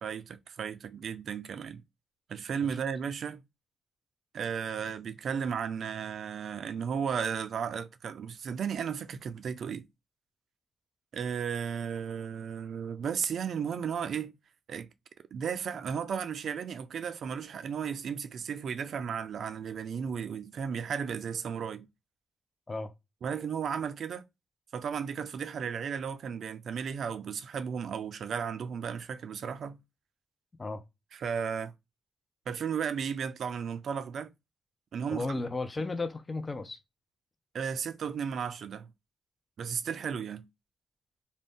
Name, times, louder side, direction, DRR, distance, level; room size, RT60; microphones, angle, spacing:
voice 1, 0.0-1.8 2.3-3.4 4.3-9.9 11.1-14.3 14.7-14.9 15.3-21.9 23.2-24.2 24.7-29.8 31.1-31.7 32.5-34.3 34.9-35.3 37.5-38.9 39.6-40.4, right 7 dB, 65° right, 0.3 m, -34 dB
voice 2, 35.1-36.8, left 3 dB, 30° left, 0.5 m, -34 dB
2.5 x 2.1 x 3.5 m
supercardioid pair, 60°, 0 cm